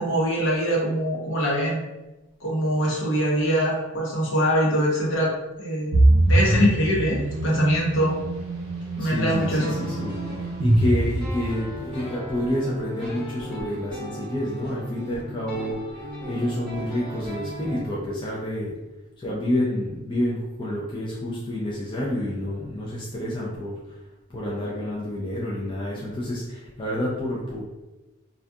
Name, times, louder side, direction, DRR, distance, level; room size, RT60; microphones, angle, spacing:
voice 1, 0.0-1.8 2.4-5.9 6.3-8.2 9.0-9.8, equal, 60° left, -4 dB, 0.7 m, -23 dB
sound 1, 5.9-11.9, right 1 dB, 80° right, 0.6 m, -23 dB
voice 2, 9.0-15.8 16.3-18.8 19.2-23.7 24.3-27.6, left 1 dB, 20° left, -6 dB, 0.3 m, -28 dB
sound 2, 9.3-17.8, equal, 5° left, 0.8 m, -38 dB
2.6 x 2.4 x 2.2 m, 1.0 s
head